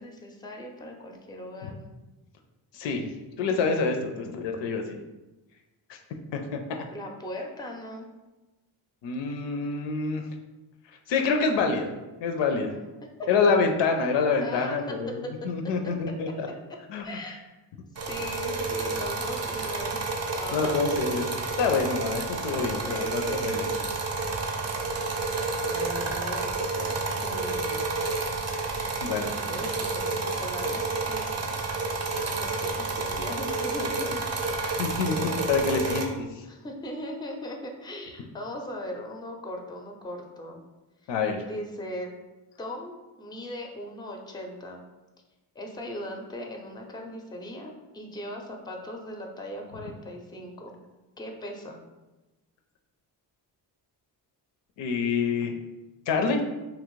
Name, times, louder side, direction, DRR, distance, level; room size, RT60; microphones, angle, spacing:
voice 1, 0.0-1.8 6.9-8.1 13.2-13.3 14.4-15.3 15.6-16.1 16.7-16.8 17.0-17.4 18.1-20.0 20.3-20.9 22.5-23.9 25.6-26.9 27.2-27.8 28.8-31.6 32.2-34.2 35.7-36.0 36.4-40.6 41.0-41.1 41.4-42.1 42.6-42.9 43.2-44.8 45.5-50.7 51.2-51.8, equal, 10° left, 2 dB, 0.5 m, -39 dB
voice 2, 2.7-3.1 3.4-4.8 6.3-6.6 9.0-10.2 11.1-11.9 12.2-12.8 13.3-16.5 16.9-17.0 20.5-21.3 21.6-23.7 29.0-29.4 34.8-36.3 41.1-41.4 54.8-55.5 56.1-56.4, left 4 dB, 75° left, 4 dB, 0.5 m, -26 dB
sound 1, 18.0-36.1, right 3 dB, 35° right, 0.6 m, -30 dB
2.9 x 2.5 x 3.0 m, 1.1 s
cardioid pair, 65°, 44 cm